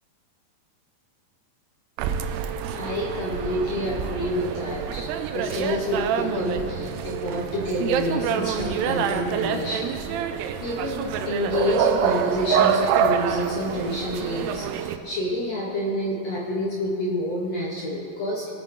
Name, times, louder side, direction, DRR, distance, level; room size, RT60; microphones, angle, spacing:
sound 1, 2.0-15.0, right 8 dB, 90° right, 2.7 m, -26 dB
voice 1, 2.7-9.9 10.6-18.5, left 1 dB, 80° left, -3 dB, 1.4 m, -28 dB
21.5 x 8.9 x 3.7 m, 2.5 s
omnidirectional pair, 4.6 m